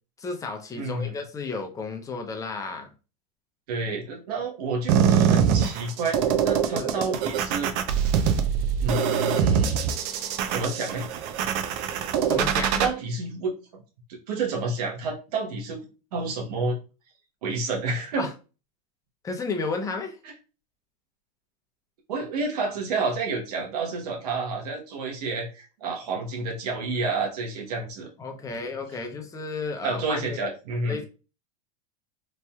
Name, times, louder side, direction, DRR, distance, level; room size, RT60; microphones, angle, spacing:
voice 1, 0.2-2.9 6.7-6.9 12.3-12.9 18.2-18.3 19.2-20.2 28.2-30.4 30.9-31.0, left 4 dB, 15° left, 4 dB, 0.6 m, -32 dB
voice 2, 0.8-1.1 3.7-7.7 8.8-9.7 10.5-11.0 12.8-13.5 14.1-15.8 16.1-16.8 17.4-18.3 22.1-28.1 29.8-31.0, right 3 dB, 75° right, 0 dB, 1.0 m, -29 dB
sound 1, 4.9-12.9, right 8 dB, 55° right, 0.5 m, -23 dB
3.1 x 2.6 x 2.2 m, 0.33 s
hypercardioid pair, 110°, 20 cm